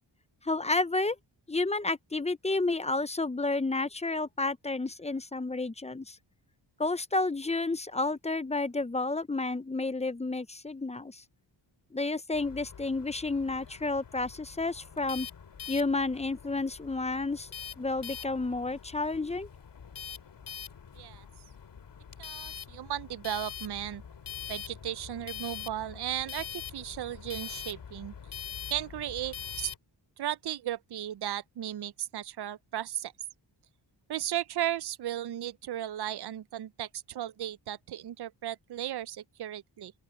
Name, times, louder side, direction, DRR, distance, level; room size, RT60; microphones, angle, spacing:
voice 1, 0.4-1.2 1.5-6.2 6.8-11.2 11.9-15.3 15.7-17.5 17.8-19.5, left 3 dB, 15° left, 0.6 m, -31 dB
sound 1, 12.3-29.8, left 9 dB, 65° left, 2.6 m, -44 dB
voice 2, 20.9-21.3 22.2-24.0 24.5-28.1 28.7-29.7 30.2-33.1 34.1-39.9, right 12 dB, 60° right, 0.6 m, -35 dB
open air
wide cardioid pair, 110°, 44 cm